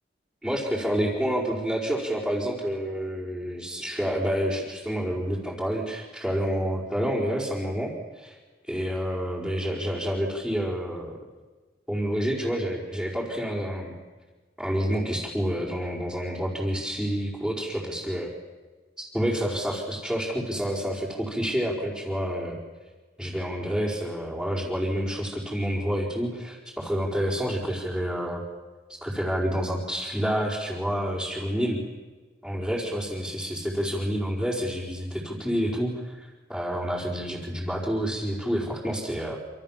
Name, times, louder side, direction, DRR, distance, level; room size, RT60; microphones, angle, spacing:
voice 1, 0.4-8.3 8.6-11.1 11.9-13.9 14.6-18.3 19.0-22.6 23.2-28.4 28.9-31.8 32.4-39.4, equal, ahead, -5 dB, 5.1 m, -28 dB
27.5 x 27.5 x 7.5 m, 1.3 s
head